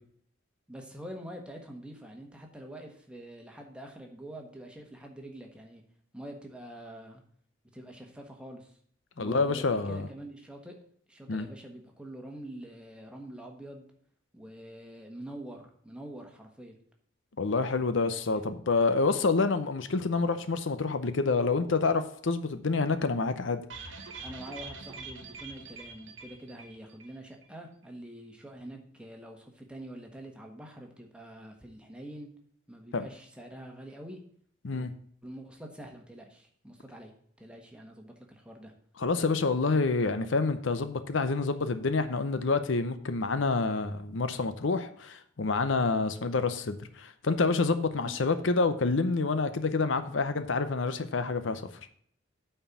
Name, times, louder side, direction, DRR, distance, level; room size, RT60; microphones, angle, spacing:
voice 1, 0.7-5.8 6.1-7.2 7.7-8.8 9.2-10.8 11.1-13.8 14.3-16.8 18.3-18.4 24.2-32.3 32.7-34.2 34.7-34.9 35.2-38.7 48.0-48.2, right 1 dB, 5° right, 2 dB, 1.4 m, -45 dB
voice 2, 9.2-10.0 11.3-11.5 17.4-23.6 32.9-33.0 34.6-34.9 39.0-51.6, left 3 dB, 70° left, 10 dB, 0.7 m, -28 dB
sound 1, 23.7-27.2 27.4-27.5 27.8-27.9, right 4 dB, 70° right, 1.4 m, -44 dB
9.0 x 4.5 x 7.0 m, 0.62 s
head